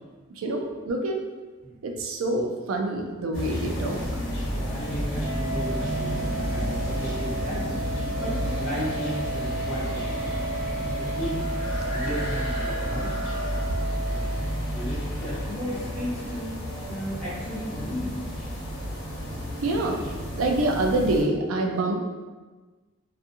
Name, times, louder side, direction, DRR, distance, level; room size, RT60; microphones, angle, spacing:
voice 1, 0.4-1.2 1.8-4.0 19.6-20.0 20.4-22.0, right 2 dB, 75° right, 2 dB, 0.4 m, -26 dB
sound 1, 3.3-21.2, equal, 85° left, 1.2 m, -31 dB
voice 2, 4.4-10.3 10.6-11.5 11.9-16.5 16.9-18.2, equal, 40° left, -12 dB, 0.7 m, -35 dB
Wind instrument woodwind instrument, 5.2-14.5, right 3 dB, 25° right, 0.5 m, -34 dB
2.6 x 2.4 x 2.5 m, 1.3 s
head